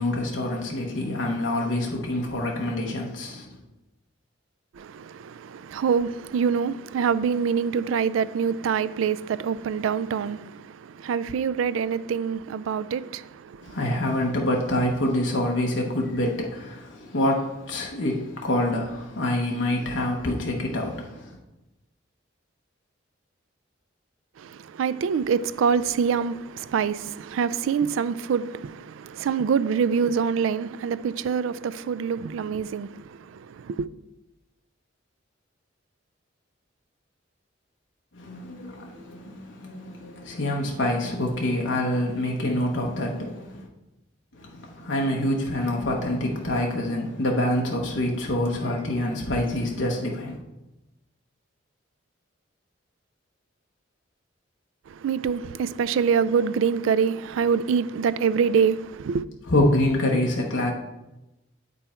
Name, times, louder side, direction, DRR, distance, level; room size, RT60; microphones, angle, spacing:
voice 1, 0.0-3.6 13.6-21.4 38.1-43.7 44.3-50.4 59.5-60.7, left 1 dB, 70° left, 1.0 m, -26 dB
voice 2, 4.7-13.8 24.4-33.9 54.9-59.2, right 6 dB, 85° right, 0.3 m, -25 dB
8.1 x 5.4 x 4.3 m
head